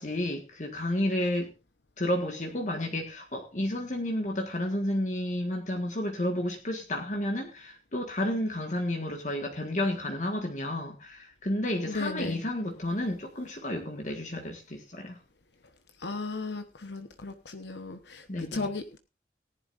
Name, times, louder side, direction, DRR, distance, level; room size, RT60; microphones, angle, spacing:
voice 1, 0.0-1.5 2.0-15.2 18.3-18.7, left 1 dB, 40° left, 2 dB, 1.7 m, -31 dB
voice 2, 11.9-12.4 16.0-19.0, left 3 dB, 70° left, 8 dB, 1.1 m, -36 dB
18.0 x 11.0 x 2.6 m, 0.27 s
head